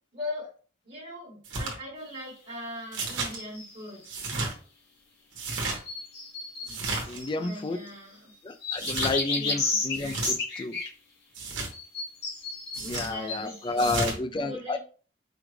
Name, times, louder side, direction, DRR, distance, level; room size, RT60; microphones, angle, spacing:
voice 1, 0.1-0.5 0.8-4.0 7.3-8.3 9.3-9.8 12.8-14.8, left 1 dB, 40° right, -5 dB, 1.5 m, -40 dB
sound 1, 1.4-1.8 2.9-3.4 4.0-4.5 5.3-5.8 6.7-7.2 8.8-9.2 9.9-10.3 11.3-11.7 12.7-13.1 13.8-14.2, right 3 dB, 70° right, 1.3 m, -32 dB
sound 2, 3.3-3.9 5.6-7.9 8.6-10.9 11.7-14.0, left 3 dB, 55° left, 1.1 m, -33 dB
voice 2, 7.1-7.8 8.4-10.8 12.8-14.8, left 2 dB, 25° left, 10 dB, 0.3 m, -31 dB
5.0 x 2.4 x 3.2 m, 0.40 s
head